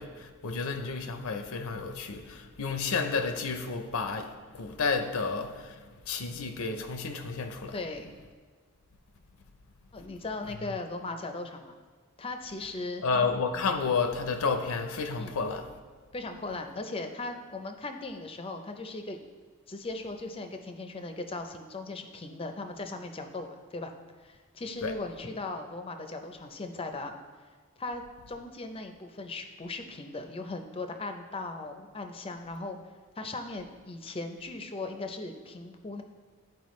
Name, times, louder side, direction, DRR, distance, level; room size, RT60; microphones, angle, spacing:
voice 1, 0.0-7.8 13.0-15.7 24.8-24.9, left 4 dB, 75° left, 0.6 m, -31 dB
voice 2, 7.7-8.1 9.9-11.8 12.2-13.0 15.2-15.3 16.1-19.2 19.7-23.9 24.2-27.2 27.8-28.0 28.3-32.8 33.2-36.0, left 2 dB, 25° left, 0.5 m, -38 dB
11.0 x 4.5 x 3.1 m
head